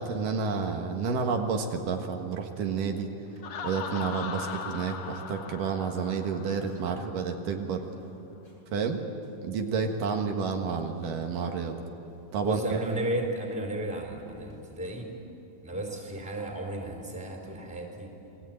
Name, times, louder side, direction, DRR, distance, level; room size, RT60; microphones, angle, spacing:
voice 1, 0.0-3.1 3.6-7.8 8.7-9.0 9.4-11.7 12.3-12.6, right 5 dB, 75° right, 3 dB, 3.1 m, -30 dB
sound 1, 3.2-4.3 4.6-7.2 7.7-8.6 8.9-9.0 9.2-10.2 10.8-13.4 14.2-15.4 15.7-16.7 17.0-17.1 17.4-17.8, equal, 40° left, 7.8 m, -52 dB
Laughter, 3.4-7.1, left 7 dB, 60° left, 1.6 m, -39 dB
voice 2, 12.4-15.1 15.6-18.1, right 1 dB, ahead, 1 dB, 3.8 m, -33 dB
28.5 x 21.0 x 9.1 m, 2.9 s
omnidirectional pair, 3.9 m